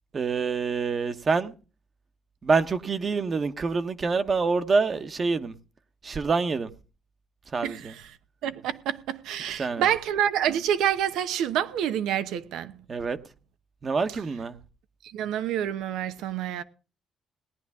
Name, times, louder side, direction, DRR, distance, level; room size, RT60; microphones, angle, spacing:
voice 1, 0.1-1.5 2.4-5.5 6.0-6.7 7.5-7.9 9.6-9.9 12.9-13.2 13.8-14.6, right 4 dB, 40° right, 1.2 m, -26 dB
voice 2, 7.6-7.9 8.4-12.7 15.1-16.6, right 10 dB, 90° right, 0.9 m, -27 dB
18.5 x 10.5 x 3.6 m
cardioid pair, 90°, 0 cm